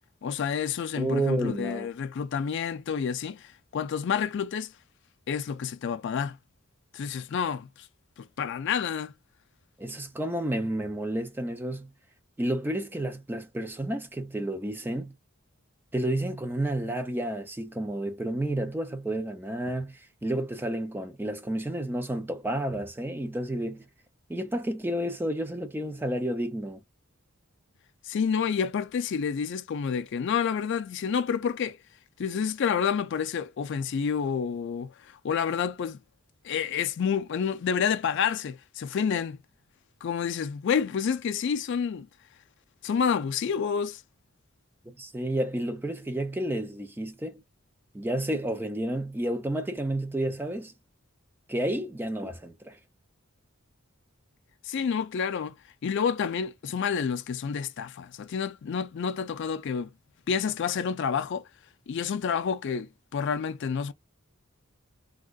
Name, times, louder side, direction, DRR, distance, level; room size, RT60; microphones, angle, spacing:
voice 1, 0.2-4.7 5.3-6.4 6.9-7.9 8.2-9.1 28.0-31.8 32.2-36.0 36.4-39.4 40.0-42.1 42.8-44.0 54.6-55.5 55.8-59.9 60.3-61.4 61.9-63.9, left 7 dB, 60° left, 0.4 m, -29 dB
voice 2, 1.0-1.9 9.8-11.9 12.4-15.1 15.9-23.8 24.3-26.8 44.8-47.4 47.9-50.7 51.5-52.8, right 1 dB, 10° right, 0.4 m, -31 dB
3.6 x 2.2 x 2.3 m
head